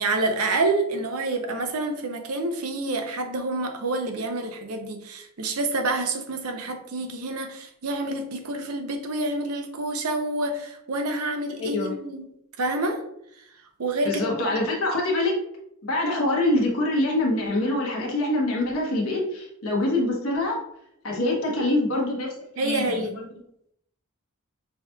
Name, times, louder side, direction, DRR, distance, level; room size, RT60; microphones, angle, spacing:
voice 1, 0.0-12.3 12.6-13.0 13.3-13.4 13.8-14.5 22.6-23.2, right 2 dB, 80° right, 5 dB, 0.6 m, -28 dB
voice 2, 11.6-11.9 14.0-15.3 15.8-20.6 21.0-22.8, left 1 dB, 65° left, -2 dB, 1.1 m, -25 dB
5.6 x 2.9 x 2.2 m, 0.75 s
head